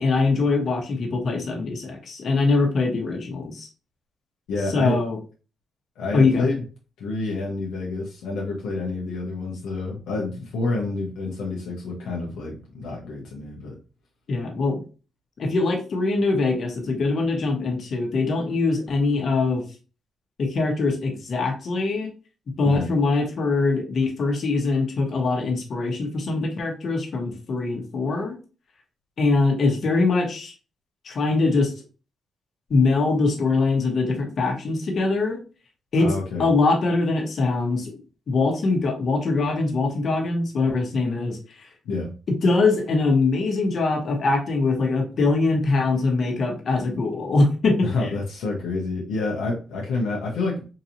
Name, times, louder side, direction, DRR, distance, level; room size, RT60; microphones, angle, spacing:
voice 1, 0.0-3.7 4.7-5.2 6.1-6.5 14.3-14.8 15.4-19.6 20.4-22.1 22.6-28.4 29.2-30.5 31.0-31.7 32.7-35.4 35.9-36.1 36.4-37.9 38.3-41.7 42.3-48.1, left 3 dB, 55° left, 2 dB, 1.2 m, -22 dB
voice 2, 4.5-5.0 6.0-6.6 7.0-13.8 22.6-22.9 36.0-36.5 41.8-42.1 47.8-50.7, left 3 dB, 85° left, -2 dB, 0.8 m, -28 dB
3.9 x 2.7 x 2.7 m, 0.34 s
cardioid pair, 75°, 0 cm